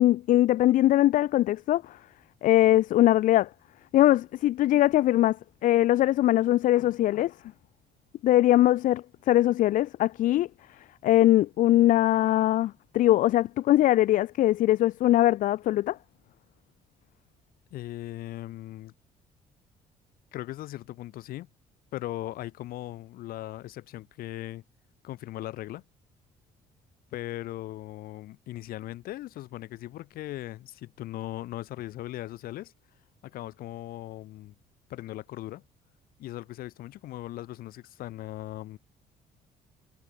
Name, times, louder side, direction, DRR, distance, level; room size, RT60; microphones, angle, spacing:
voice 1, 0.0-2.0 2.4-3.5 3.9-5.4 5.6-7.3 8.2-10.5 11.0-16.0, left 14 dB, 60° left, 0.6 m, -21 dB
voice 2, 17.7-18.9 20.3-21.5 21.9-24.6 25.0-25.8 27.1-32.7 33.2-34.5 34.9-35.6 36.2-38.8, left 15 dB, 75° left, 6.4 m, -38 dB
cardioid pair, 145°, 15 cm